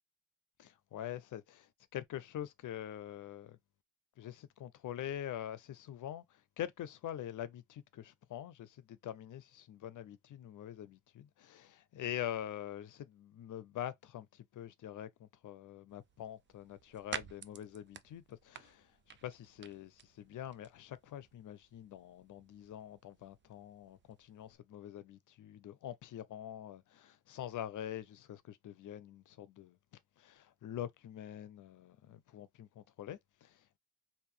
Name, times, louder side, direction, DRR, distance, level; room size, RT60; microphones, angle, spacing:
voice 1, 0.6-3.6 4.2-29.8 30.2-33.8, left 11 dB, 70° left, 0.5 m, -45 dB
sound 1, 15.9-24.6, right 8 dB, 35° right, 0.4 m, -51 dB
3.6 x 2.6 x 3.2 m
cardioid pair, 95°, 32 cm